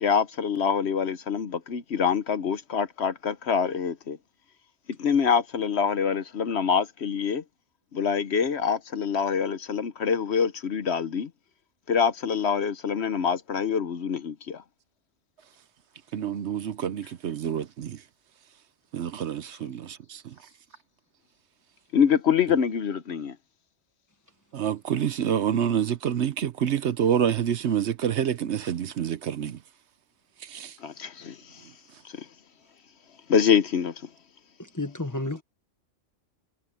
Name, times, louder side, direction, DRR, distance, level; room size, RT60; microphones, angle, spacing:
voice 1, 0.0-4.2 5.0-7.4 7.9-11.3 11.9-14.6 21.9-23.3 30.8-31.3 33.3-33.9, left 7 dB, 65° left, 1.1 m, -25 dB
voice 2, 16.1-18.0 18.9-20.3 24.5-29.6 30.4-30.8, right 9 dB, 65° right, 1.0 m, -27 dB
voice 3, 34.6-35.4, left 2 dB, 15° left, 1.4 m, -31 dB
omnidirectional pair, 1.3 m